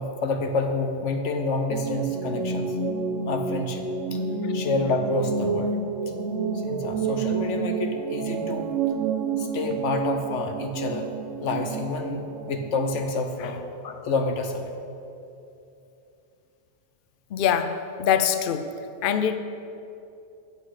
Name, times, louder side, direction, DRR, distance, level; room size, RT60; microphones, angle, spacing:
voice 1, 0.0-2.8 3.3-3.8 4.1-4.2 4.5-5.7 6.5-8.7 9.4-11.1 11.4-14.7, left 3 dB, 80° left, 5 dB, 1.3 m, -28 dB
sound 1, 1.7-13.0, right 5 dB, 85° right, 1.0 m, -29 dB
voice 2, 17.3-18.7 19.0-19.4, left 8 dB, 55° left, 10 dB, 0.7 m, -24 dB
14.0 x 8.3 x 4.9 m, 2.7 s
omnidirectional pair, 1.2 m